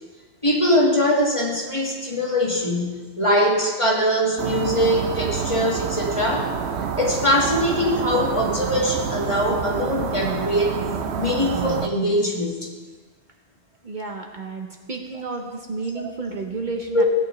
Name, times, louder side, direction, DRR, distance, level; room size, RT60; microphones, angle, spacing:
voice 1, 0.4-6.5 7.0-10.8 11.2-12.7 16.0-16.1 16.9-17.0, equal, 30° left, -2 dB, 1.7 m, -22 dB
sound 1, 4.4-11.9, right 6 dB, 80° right, 1.0 m, -28 dB
voice 2, 13.8-17.0, right 3 dB, 50° right, 2 dB, 1.0 m, -31 dB
17.0 x 9.0 x 3.1 m, 1.4 s
omnidirectional pair, 1.1 m